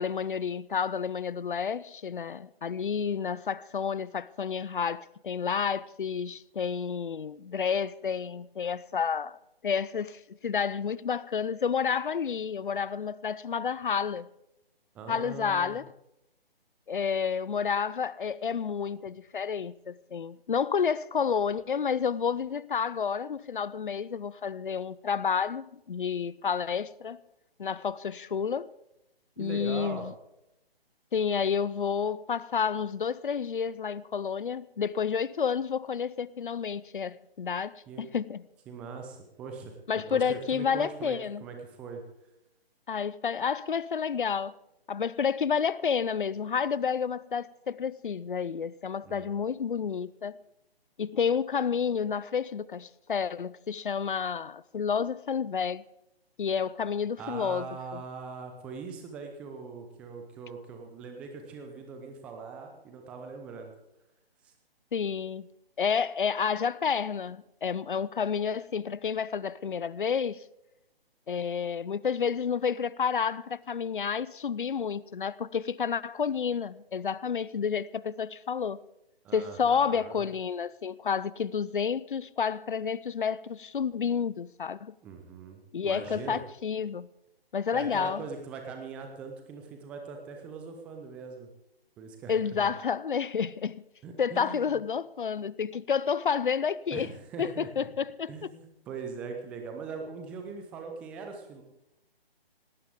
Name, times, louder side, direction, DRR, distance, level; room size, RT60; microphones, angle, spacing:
voice 1, 0.0-9.4 9.6-14.3 15.1-15.8 16.9-27.2 27.6-28.7 29.4-30.1 31.1-38.4 39.9-41.4 42.9-44.6 44.9-50.3 51.0-55.8 56.4-58.0 64.9-65.5 65.8-70.4 71.3-78.8 79.3-84.9 85.7-87.1 87.5-88.2 92.3-93.8 94.2-97.1 97.4-98.3, left 6 dB, 55° left, 0.6 m, -30 dB
voice 2, 14.9-15.8 29.4-30.1 37.9-38.1 38.7-42.0 49.0-49.3 57.2-63.7 64.4-64.5 79.2-80.3 85.0-86.4 87.7-91.5 92.0-92.7 94.0-94.8 96.9-97.9 98.3-101.6, right 5 dB, 5° right, 0.5 m, -41 dB
18.5 x 17.5 x 3.6 m
figure-of-eight pair, 145°, 31 cm